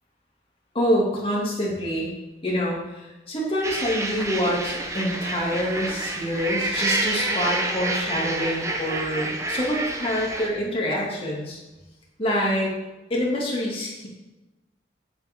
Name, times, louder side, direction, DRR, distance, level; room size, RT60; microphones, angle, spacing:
voice 1, 0.7-2.1 2.4-11.6 12.2-12.7 13.1-14.1, equal, 30° left, -3 dB, 2.5 m, -26 dB
sound 1, 3.6-10.5, right 2 dB, 15° right, 0.9 m, -28 dB
9.9 x 9.0 x 3.8 m, 1.0 s
head